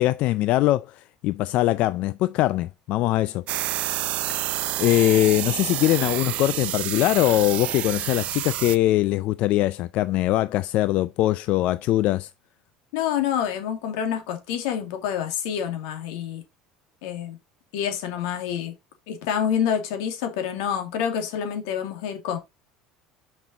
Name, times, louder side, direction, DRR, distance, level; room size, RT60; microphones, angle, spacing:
voice 1, 0.0-3.4 4.4-12.3, left 15 dB, 55° left, 0.3 m, -22 dB
sound 1, 3.5-8.8, right 14 dB, 50° right, 0.4 m, -29 dB
voice 2, 12.9-16.4 17.0-17.4 17.7-18.7 19.1-22.4, left 9 dB, 85° left, 2.1 m, -27 dB
6.0 x 5.4 x 3.9 m
cardioid pair, 135°, 3 cm